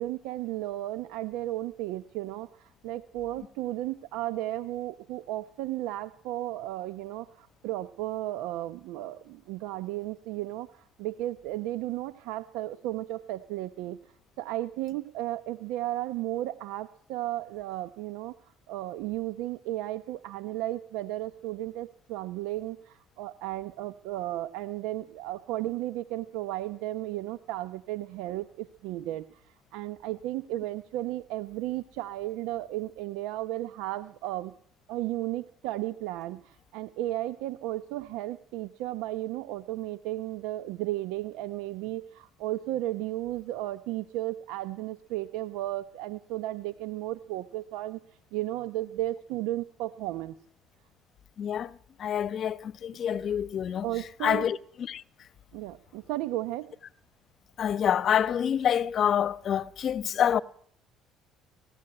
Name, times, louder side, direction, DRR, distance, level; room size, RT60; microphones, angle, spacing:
voice 1, 0.0-14.0 14.4-18.3 18.7-34.5 34.9-48.0 48.3-50.4 53.8-54.5 55.5-56.7, right 15 dB, 80° right, 0.8 m, -34 dB
voice 2, 51.4-53.9 54.2-55.0 57.6-60.4, left 9 dB, 50° left, 1.0 m, -27 dB
19.0 x 16.0 x 8.8 m
supercardioid pair, 85°, 0 cm